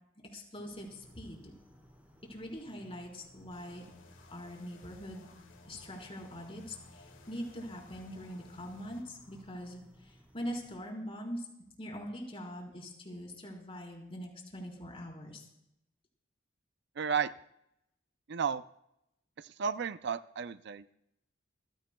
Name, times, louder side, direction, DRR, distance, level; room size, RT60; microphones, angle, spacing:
voice 1, 0.3-1.5 2.3-3.8 4.3-5.3 5.7-11.5 11.8-15.5, equal, 30° left, 0 dB, 4.1 m, -43 dB
sound 1, 0.6-10.7, equal, 10° right, 4.1 m, -60 dB
sound 2, 3.5-9.0, left 3 dB, 90° left, 1.9 m, -57 dB
voice 2, 17.0-17.3 18.3-18.6 19.6-20.8, right 6 dB, 65° right, 13 dB, 0.5 m, -32 dB
28.0 x 15.5 x 2.3 m, 0.80 s
head